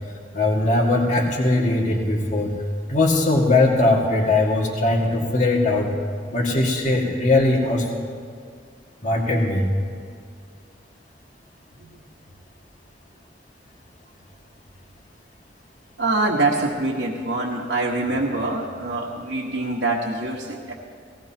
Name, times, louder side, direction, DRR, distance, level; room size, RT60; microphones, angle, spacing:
voice 1, 0.3-2.5 2.9-5.9 6.3-7.9 9.0-9.7, left 2 dB, 45° left, -1 dB, 2.1 m, -20 dB
voice 2, 16.0-20.7, right 2 dB, 80° right, -5 dB, 1.5 m, -24 dB
18.5 x 17.5 x 3.0 m, 2.2 s
head